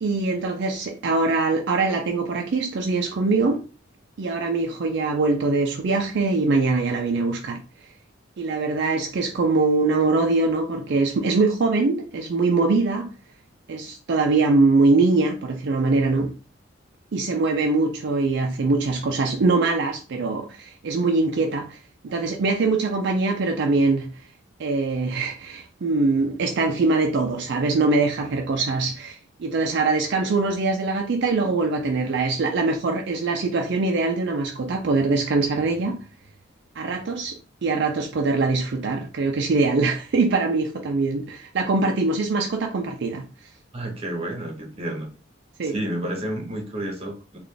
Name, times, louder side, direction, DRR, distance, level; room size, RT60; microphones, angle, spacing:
voice 1, 0.0-3.6 4.2-7.6 8.4-13.1 13.7-16.4 17.1-24.3 24.6-36.0 36.8-43.2 45.6-45.7, right 3 dB, 60° right, 0.4 m, -23 dB
voice 2, 43.7-45.1 45.6-47.4, right 1 dB, 30° right, 1.0 m, -30 dB
3.9 x 2.4 x 3.3 m
head